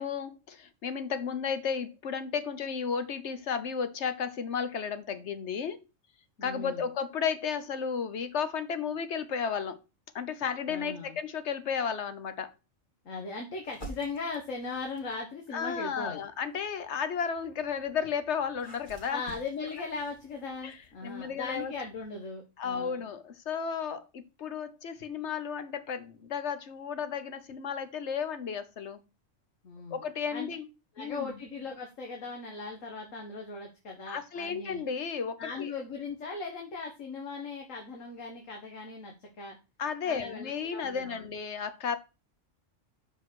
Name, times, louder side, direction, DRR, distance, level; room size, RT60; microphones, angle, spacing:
voice 1, 0.0-5.8 6.4-9.8 10.1-12.5 15.5-19.2 20.6-20.8 21.0-21.7 22.6-29.0 29.9-30.7 31.0-31.4 34.1-35.7 39.8-42.0, left 6 dB, 60° left, 1.2 m, -33 dB
voice 2, 6.4-6.9 10.7-11.2 13.1-16.2 19.1-23.0 29.6-30.0 30.3-30.5 31.0-34.8 35.4-39.6 40.1-41.3, left 4 dB, 80° left, 1.8 m, -39 dB
sound 1, 13.6-15.2 15.9-22.1, right 1 dB, 40° left, 2.4 m, -51 dB
6.0 x 5.1 x 6.1 m
omnidirectional pair, 1.3 m